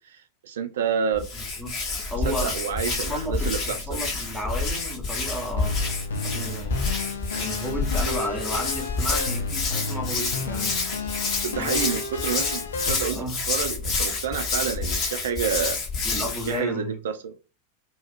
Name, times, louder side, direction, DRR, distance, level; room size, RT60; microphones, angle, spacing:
voice 1, 0.4-1.3 2.2-4.0 11.4-13.2 13.5-17.4, right 7 dB, 60° right, 0.4 m, -29 dB
Hands, 1.1-16.6, left 4 dB, 35° left, 0.9 m, -28 dB
voice 2, 2.1-5.8 6.2-6.8 7.3-10.8 11.6-11.9 13.1-13.4 16.0-17.0, equal, 5° left, 1.0 m, -33 dB
sound 1, 5.6-13.0, left 4 dB, 70° left, 0.4 m, -32 dB
2.7 x 2.3 x 2.4 m
figure-of-eight pair, 90°, 0 cm